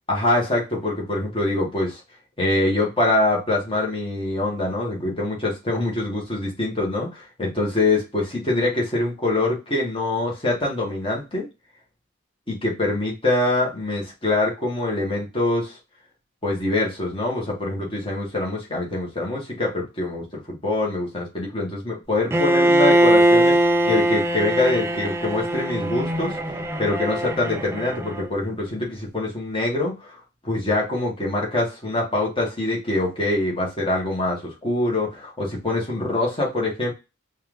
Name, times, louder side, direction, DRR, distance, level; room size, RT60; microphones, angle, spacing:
voice 1, 0.1-2.0 2.4-11.5 12.5-15.8 16.4-36.9, left 2 dB, 25° left, -3 dB, 1.5 m, -24 dB
Bowed string instrument, 22.3-28.3, right 1 dB, 10° right, 0.3 m, -21 dB
4.2 x 2.6 x 3.6 m, 0.27 s
head